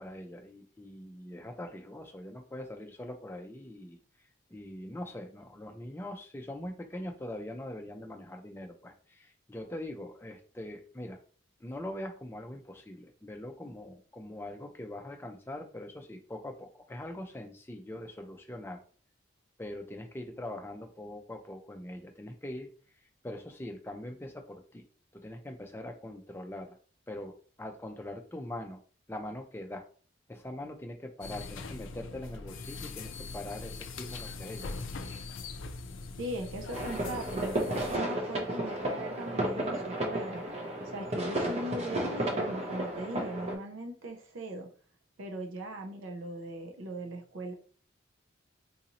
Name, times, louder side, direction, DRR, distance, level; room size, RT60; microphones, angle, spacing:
voice 1, 0.0-4.0 4.5-11.2 11.6-18.8 19.6-22.7 23.2-24.8 25.1-26.8 27.1-28.8 29.1-29.9 30.3-34.7, left 1 dB, 10° left, 3 dB, 0.4 m, -42 dB
sound 1, 31.2-38.0, left 3 dB, 75° left, 0.4 m, -41 dB
voice 2, 36.2-40.4 40.9-44.7 45.2-47.5, right 1 dB, 75° right, 3 dB, 0.6 m, -39 dB
sound 2, 36.7-43.5, right 1 dB, 30° right, 0.6 m, -33 dB
3.9 x 2.6 x 2.9 m, 0.43 s
head